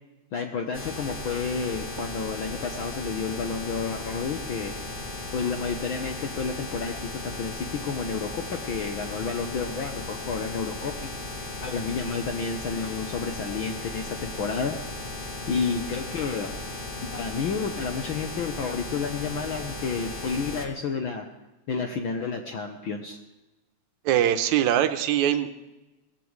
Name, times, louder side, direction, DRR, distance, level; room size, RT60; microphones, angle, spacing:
voice 1, 0.3-4.7 5.3-11.1 11.6-14.8 15.5-16.5 17.0-21.3 21.7-23.2, left 5 dB, 70° left, 4 dB, 1.2 m, -30 dB
sound 1, 0.7-20.7, left 2 dB, 55° left, 0.5 m, -36 dB
voice 2, 24.1-25.5, right 11 dB, 75° right, 10 dB, 2.1 m, -22 dB
19.5 x 15.0 x 3.2 m, 1.0 s
omnidirectional pair, 3.4 m